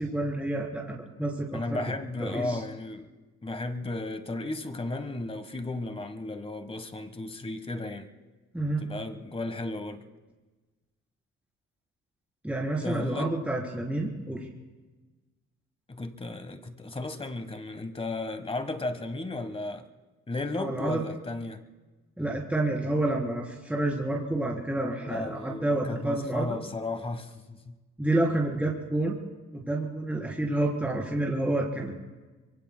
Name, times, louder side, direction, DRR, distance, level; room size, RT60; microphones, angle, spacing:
voice 1, 0.0-2.6 8.5-8.8 12.4-14.5 20.6-21.0 22.2-26.6 28.0-29.2 29.5-31.9, right 1 dB, 5° right, 3.7 m, -29 dB
voice 2, 1.5-3.1 3.4-8.1 8.8-10.1 12.8-13.4 15.9-19.9 20.3-21.6 25.0-27.7, left 2 dB, 20° left, 1.3 m, -34 dB
25.5 x 23.5 x 2.2 m
cardioid pair, 90°, 30 cm